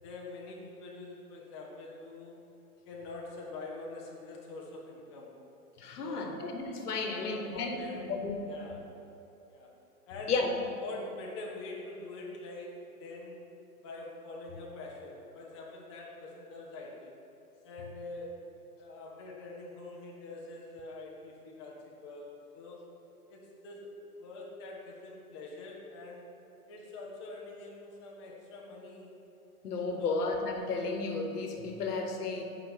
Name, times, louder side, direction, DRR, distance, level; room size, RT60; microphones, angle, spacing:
voice 1, 0.0-2.4 2.9-5.4 6.0-6.4 7.2-8.1 8.5-8.9 9.5-9.7 10.1-10.4 10.8-13.5 13.8-17.1 17.6-18.4 18.8-22.8 23.3-23.9 24.2-26.3 26.7-29.2 30.0-30.2, left 2 dB, 20° left, -3 dB, 0.5 m, -45 dB
voice 2, 5.8-8.3 10.3-10.5 29.6-32.4, left 3 dB, 85° left, 3 dB, 1.1 m, -33 dB
5.5 x 5.0 x 5.7 m, 2.8 s
hypercardioid pair, 155°, 45 cm